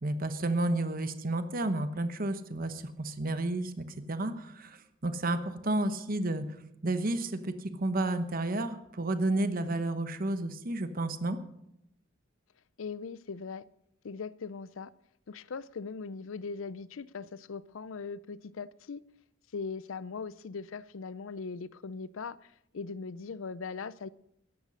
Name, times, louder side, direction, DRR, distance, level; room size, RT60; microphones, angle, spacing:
voice 1, 0.0-6.5 6.8-11.4, right 2 dB, 45° right, 10 dB, 1.0 m, -31 dB
voice 2, 12.8-13.6 14.0-14.9 15.3-19.0 19.5-24.1, left 5 dB, 80° left, 19 dB, 0.5 m, -40 dB
13.5 x 10.5 x 6.3 m, 0.77 s
head